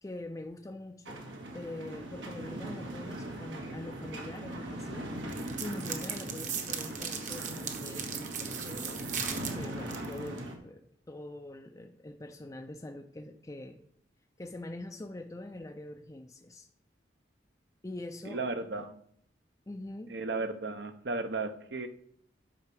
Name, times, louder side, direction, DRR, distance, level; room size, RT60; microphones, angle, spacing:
voice 1, 0.0-1.3 1.5-13.8 14.4-16.7 17.8-18.4 18.8-18.9 19.7-20.1, left 1 dB, 20° left, 0.4 m, -44 dB
sound 1, 1.1-10.5, right 1 dB, 90° right, 1.9 m, -40 dB
sound 2, 5.3-10.4, right 7 dB, 45° right, 1.1 m, -38 dB
voice 2, 18.3-19.0 20.1-21.9, right 3 dB, 65° right, 0.9 m, -34 dB
8.7 x 5.7 x 6.1 m
head